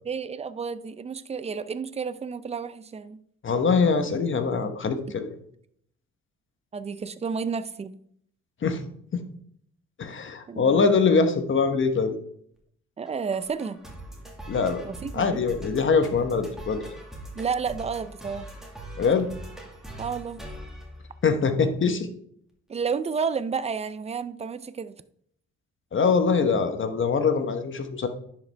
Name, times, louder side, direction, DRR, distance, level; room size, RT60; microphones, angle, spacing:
voice 1, 0.0-3.2 6.7-8.0 10.5-10.9 13.0-13.8 14.8-15.4 17.3-18.5 20.0-20.4 22.7-25.0, right 5 dB, 20° right, 0.4 m, -31 dB
voice 2, 3.4-5.3 8.6-8.8 9.1-9.2 10.0-12.1 14.5-14.8 15.1-16.9 19.0-19.3 21.2-22.1 25.9-28.1, left 5 dB, 40° left, 1.0 m, -23 dB
sound 1, 13.1-21.6, right 1 dB, ahead, 1.9 m, -42 dB
10.0 x 5.3 x 3.4 m
cardioid pair, 90°, 30 cm